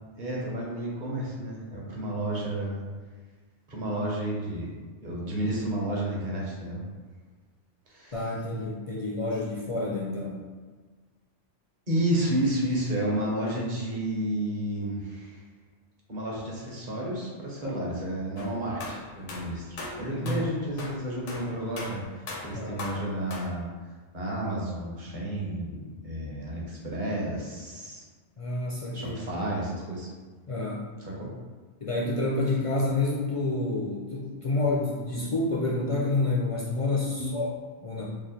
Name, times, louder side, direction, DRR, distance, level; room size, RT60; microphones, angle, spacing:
voice 1, 0.2-2.8 3.7-4.7 5.0-6.8 7.9-8.1 11.9-15.4 16.1-23.7 24.1-28.0 28.9-30.1 31.1-31.3 37.2-37.3, right 1 dB, 45° right, -4 dB, 0.9 m, -31 dB
voice 2, 8.1-10.4 17.6-17.8 20.1-20.5 22.5-22.8 28.4-29.2 30.5-30.8 31.8-37.5 37.8-38.0, left 2 dB, 60° left, -4 dB, 0.3 m, -29 dB
sound 1, 18.4-23.5, left 2 dB, 90° left, 1.0 m, -38 dB
3.2 x 2.4 x 4.1 m, 1.4 s
omnidirectional pair, 1.2 m